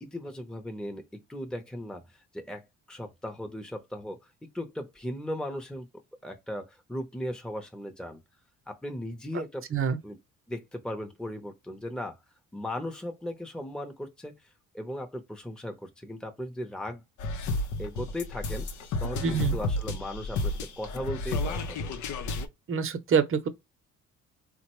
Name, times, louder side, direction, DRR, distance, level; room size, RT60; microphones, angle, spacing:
voice 1, 0.0-5.9 6.2-8.2 8.7-9.7 10.0-10.2 10.5-12.2 12.5-14.5 14.7-17.0 17.8-21.9, left 1 dB, 5° left, 0.7 m, -37 dB
sound 1, 17.2-22.5, left 2 dB, 75° left, 0.7 m, -31 dB
voice 2, 19.2-19.6 22.7-23.5, right 6 dB, 45° right, 0.7 m, -26 dB
3.6 x 2.2 x 3.0 m
cardioid pair, 90°, 30 cm